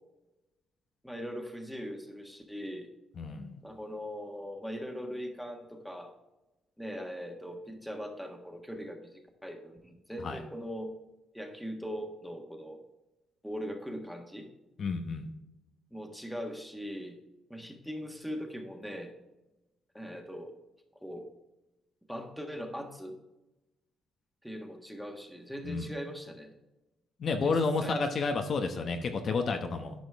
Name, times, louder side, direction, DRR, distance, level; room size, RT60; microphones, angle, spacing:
voice 1, 1.0-2.9 3.6-6.1 6.8-10.9 11.3-12.8 13.4-14.5 15.9-17.1 17.5-19.1 19.9-20.5 21.0-21.3 22.1-23.2 24.4-26.5 27.4-28.0, equal, ahead, 3 dB, 1.5 m, -40 dB
voice 2, 3.2-3.6 10.2-10.4 14.8-15.3 25.6-25.9 27.2-29.9, left 4 dB, 55° left, 5 dB, 0.9 m, -30 dB
10.5 x 5.1 x 3.5 m, 1.0 s
cardioid pair, 90°, 0 cm